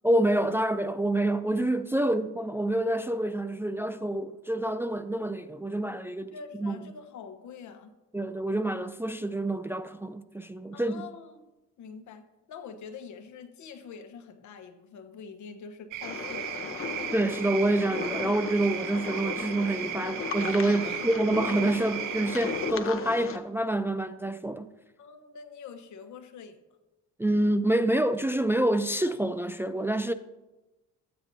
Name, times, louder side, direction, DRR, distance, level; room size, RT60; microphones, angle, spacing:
voice 1, 0.0-6.3 6.6-6.8 8.1-11.1 17.1-24.7 27.2-30.1, right 1 dB, 10° right, 0.3 m, -27 dB
voice 2, 6.3-7.9 10.7-11.4 11.8-16.7 20.8-21.0 25.0-26.6, left 6 dB, 75° left, 1.1 m, -45 dB
sound 1, 15.9-22.7, right 14 dB, 85° right, 0.5 m, -36 dB
sound 2, 16.0-23.4, left 6 dB, 45° left, 0.9 m, -36 dB
14.0 x 8.8 x 2.7 m
cardioid pair, 90°, 30 cm